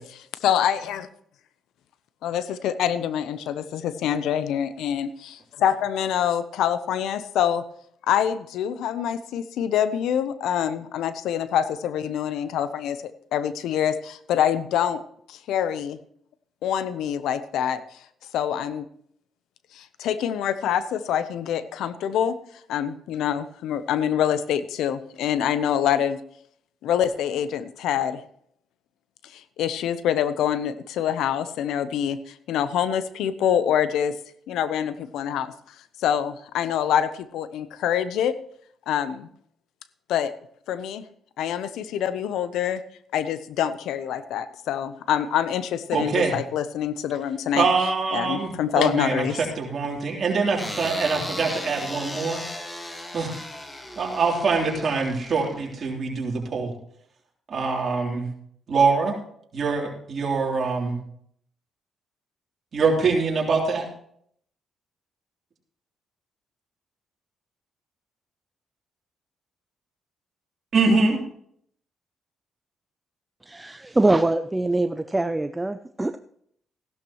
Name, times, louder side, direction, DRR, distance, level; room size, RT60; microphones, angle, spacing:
voice 1, 0.4-1.1 2.2-7.6 8.1-15.0 15.3-16.0 16.6-17.8 18.3-18.9 19.7-22.3 22.7-26.2 26.8-28.2 29.3-34.2 34.5-35.5 36.0-38.3 38.9-39.3 40.1-40.3 40.7-41.0 41.4-42.8 43.1-47.7 48.1-49.4, left 9 dB, 85° left, 14 dB, 0.7 m, -25 dB
voice 2, 45.9-46.3 47.5-48.5 48.8-49.3 49.6-52.4 53.1-53.4 54.0-56.7 57.5-58.3 58.7-59.1 59.5-61.0 62.7-63.8 70.7-71.2, right 4 dB, 50° right, -1 dB, 3.4 m, -24 dB
sound 1, 50.6-55.9, left 1 dB, 15° left, 1.7 m, -36 dB
voice 3, 73.5-76.2, right 2 dB, 15° right, 10 dB, 0.5 m, -23 dB
15.5 x 12.0 x 3.1 m, 0.67 s
cardioid pair, 90°, 0 cm